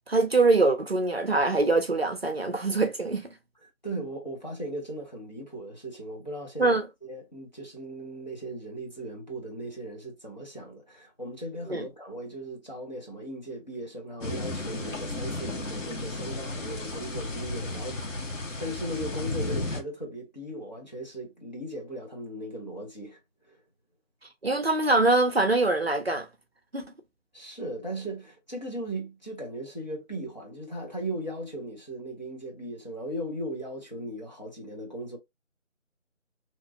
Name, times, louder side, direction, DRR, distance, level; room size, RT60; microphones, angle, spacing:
voice 1, 0.1-3.3 6.6-6.9 11.7-11.8 24.4-26.3 26.7-26.9, right 3 dB, 50° right, 0.5 m, -23 dB
voice 2, 3.6-23.6 27.3-35.2, right 1 dB, 35° left, 0.8 m, -38 dB
sound 1, 14.2-19.8, left 2 dB, 70° left, 1.1 m, -34 dB
2.9 x 2.3 x 2.6 m
figure-of-eight pair, 165°, 39 cm